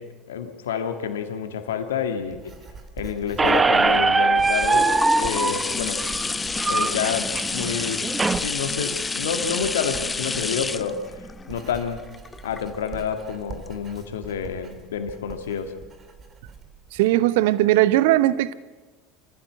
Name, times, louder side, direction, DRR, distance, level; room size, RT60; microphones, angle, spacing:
voice 1, 0.0-2.5 3.0-6.1 6.6-8.1 8.4-12.0 12.4-15.8, left 7 dB, 75° left, 1.9 m, -29 dB
Writing, 2.3-17.1, right 4 dB, 35° right, 3.1 m, -44 dB
Squeak, 3.4-8.4, right 3 dB, 20° right, 0.9 m, -22 dB
sound 1, 3.8-13.1 13.7-13.8, left 4 dB, 20° left, 0.9 m, -29 dB
voice 2, 16.9-18.5, right 15 dB, 70° right, 0.8 m, -19 dB
25.5 x 15.0 x 8.0 m
hypercardioid pair, 70°, 0 cm